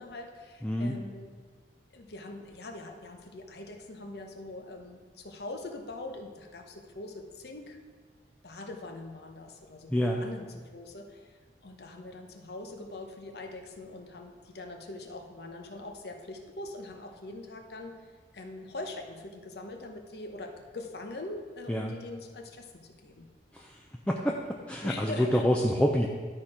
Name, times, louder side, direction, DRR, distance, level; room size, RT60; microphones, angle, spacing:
voice 1, 0.0-1.3 1.9-7.8 8.4-18.1 18.3-23.3 24.8-25.5, left 2 dB, 65° left, 4 dB, 0.9 m, -43 dB
voice 2, 0.6-0.9 9.9-10.2 21.7-21.9 23.5-23.8 24.1-26.1, equal, 5° left, 0 dB, 0.5 m, -27 dB
12.0 x 4.4 x 4.9 m, 1.5 s
head